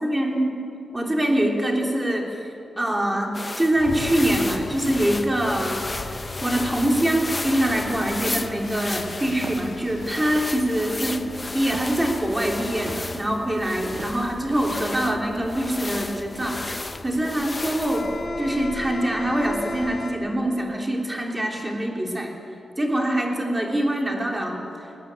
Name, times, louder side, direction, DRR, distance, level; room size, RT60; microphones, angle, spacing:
voice 1, 0.0-0.6 0.9-2.4 2.8-11.2 11.5-18.1 18.4-22.3 22.8-24.6, right 1 dB, 15° right, 1 dB, 3.3 m, -24 dB
sound 1, 3.3-18.2, left 2 dB, 25° left, 0.8 m, -34 dB
sound 2, 3.8-20.1, left 3 dB, 50° left, 2.7 m, -38 dB
Walk footsteps, 9.4-9.7 10.3-10.7 11.7-12.1 12.9-13.1 13.9-14.4, right 4 dB, 50° right, 1.5 m, -38 dB
20.5 x 19.0 x 8.9 m, 3.0 s
wide cardioid pair, 135°, 0 cm